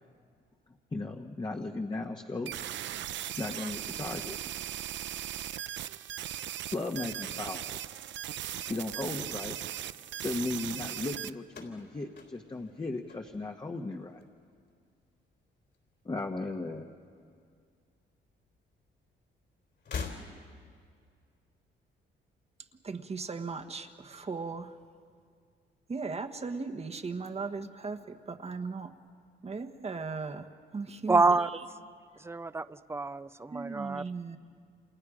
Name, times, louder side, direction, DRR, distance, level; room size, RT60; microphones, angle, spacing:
voice 1, 0.9-2.5 3.4-4.4 6.7-7.6 8.7-9.6 10.2-14.2 16.0-16.9, left 2 dB, 20° left, 2 dB, 1.3 m, -36 dB
sound 1, 2.5-11.3, right 11 dB, 65° right, 0.6 m, -38 dB
sound 2, 11.5-13.8 14.1-14.7 15.7-16.8 17.0-17.1 18.3-18.4 19.7-20.8, left 5 dB, 60° left, 3.7 m, -43 dB
voice 2, 22.8-24.8 25.9-28.9 29.4-30.5 30.7-31.3 33.5-34.4, right 4 dB, 30° right, 6 dB, 1.3 m, -37 dB
voice 3, 31.1-31.5 32.2-34.0, right 3 dB, 15° right, 13 dB, 0.6 m, -27 dB
29.0 x 27.0 x 5.1 m, 2.2 s
cardioid pair, 90°, 20 cm